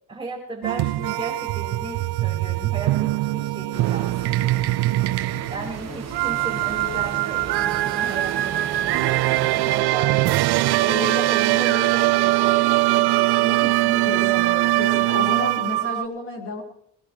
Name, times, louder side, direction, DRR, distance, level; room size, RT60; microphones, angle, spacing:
voice 1, 0.1-4.6 5.5-10.5 10.8-15.1, right 2 dB, 15° right, -5 dB, 4.8 m, -35 dB
sound 1, 0.6-16.1, right 18 dB, 85° right, 0.6 m, -22 dB
sound 2, 3.7-9.8, right 6 dB, 45° right, 1.5 m, -36 dB
voice 2, 5.3-6.4 14.0-16.6, left 2 dB, 35° left, 0 dB, 4.3 m, -33 dB
19.5 x 19.0 x 3.2 m, 0.66 s
cardioid pair, 145°, 38 cm